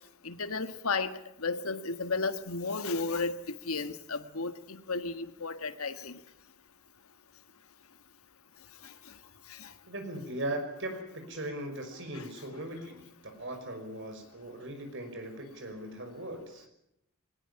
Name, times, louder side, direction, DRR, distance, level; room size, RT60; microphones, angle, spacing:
voice 1, 0.2-3.3 3.6-6.2 9.5-9.7 12.1-12.2, left 4 dB, 90° left, 1.7 m, -33 dB
voice 2, 9.9-16.7, right 1 dB, 55° right, 5.8 m, -39 dB
21.0 x 19.0 x 10.0 m
head